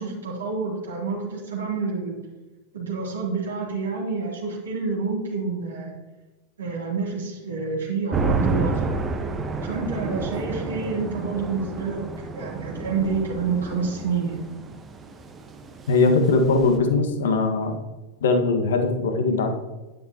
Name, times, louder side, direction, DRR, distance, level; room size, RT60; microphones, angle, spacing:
voice 1, 0.0-2.2 2.7-5.9 6.6-8.9 9.6-12.0 12.3-14.4, right 4 dB, 70° right, -4 dB, 3.2 m, -28 dB
sound 1, 8.1-16.8, right 4 dB, 20° right, 1.2 m, -30 dB
voice 2, 15.9-17.8 18.2-19.5, left 3 dB, 60° left, 4 dB, 1.7 m, -20 dB
11.0 x 11.0 x 3.0 m, 1.1 s
figure-of-eight pair, 90°, 0 cm